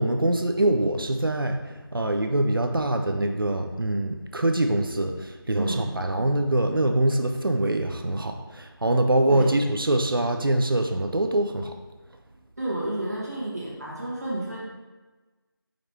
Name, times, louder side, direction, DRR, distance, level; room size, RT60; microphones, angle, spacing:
voice 1, 0.0-1.6 1.9-11.7, right 1 dB, 65° right, 5 dB, 0.5 m, -24 dB
voice 2, 5.5-5.9 9.3-9.6 12.6-14.7, right 1 dB, 45° right, -7 dB, 1.2 m, -30 dB
5.0 x 3.1 x 3.2 m, 1.2 s
figure-of-eight pair, 170°, 12 cm